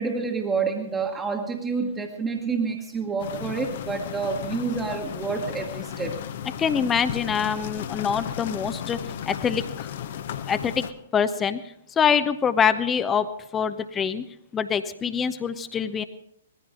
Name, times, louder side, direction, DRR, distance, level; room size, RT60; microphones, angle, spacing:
voice 1, 0.0-6.2, right 4 dB, 15° right, 1 dB, 1.4 m, -28 dB
sound 1, 3.2-10.9, left 9 dB, 50° left, 0.9 m, -35 dB
voice 2, 6.6-9.0 9.3-9.9 10.5-10.8 11.1-11.6 12.0-13.3 13.5-14.2 14.5-16.0, left 7 dB, 15° left, 11 dB, 0.7 m, -24 dB
19.0 x 15.0 x 3.8 m, 0.74 s
figure-of-eight pair, 115°, 0 cm